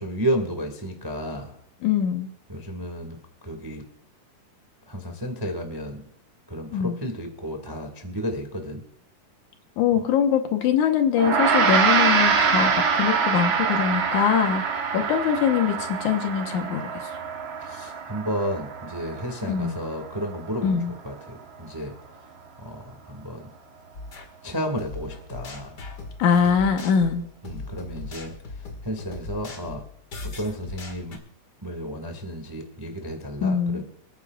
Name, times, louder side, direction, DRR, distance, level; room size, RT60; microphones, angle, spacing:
voice 1, 0.0-1.6 2.5-3.2 3.4-3.8 4.9-6.0 6.5-8.8 17.6-20.8 21.0-22.0 22.6-23.5 24.4-25.8 27.4-28.3 28.8-29.8 30.2-31.2 31.6-33.8, equal, 15° right, 4 dB, 0.9 m, -32 dB
voice 2, 1.8-2.3 6.7-7.0 9.8-14.6 14.9-16.8 19.5-19.8 20.6-20.9 26.2-27.3 33.4-33.8, left 7 dB, 70° left, 5 dB, 2.4 m, -22 dB
Gong, 11.2-20.7, right 6 dB, 55° right, 1.4 m, -25 dB
sound 1, 23.9-24.3 24.8-31.2, left 3 dB, 35° left, 2.0 m, -38 dB
26.5 x 9.4 x 2.4 m, 0.72 s
omnidirectional pair, 3.8 m